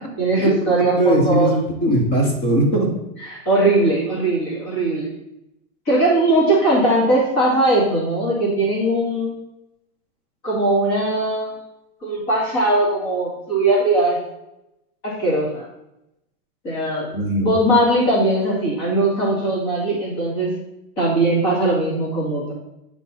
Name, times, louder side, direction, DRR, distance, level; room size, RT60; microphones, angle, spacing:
voice 1, 0.2-1.5 3.3-5.1 5.9-9.3 10.4-11.5 12.0-14.2 15.0-15.6 16.6-17.1 17.4-20.5 21.0-22.5, right 2 dB, 30° left, -6 dB, 2.5 m, -19 dB
voice 2, 1.0-2.9 17.1-17.5, right 1 dB, 15° left, 2 dB, 0.6 m, -19 dB
8.8 x 4.6 x 4.1 m, 0.88 s
supercardioid pair, 175°, 45 cm